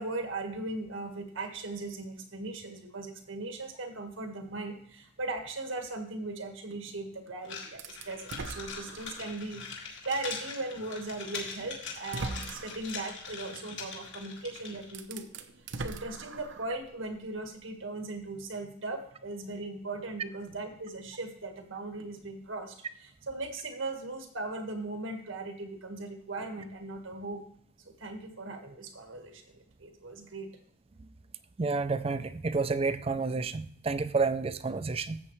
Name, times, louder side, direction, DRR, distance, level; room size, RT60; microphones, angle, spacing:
voice 1, 0.0-15.3 15.8-27.4 27.8-30.5, right 2 dB, 85° right, 1.6 m, -38 dB
Falling Sticks, 7.4-14.9, left 5 dB, 65° left, 2.6 m, -42 dB
sound 1, 7.8-9.4 10.0-10.1 11.3-11.4 11.9-12.9 14.4-14.5 14.8-16.8, right 3 dB, 65° right, 0.7 m, -40 dB
voice 2, 31.6-35.2, right 4 dB, 30° right, 0.4 m, -30 dB
13.0 x 7.8 x 3.1 m
head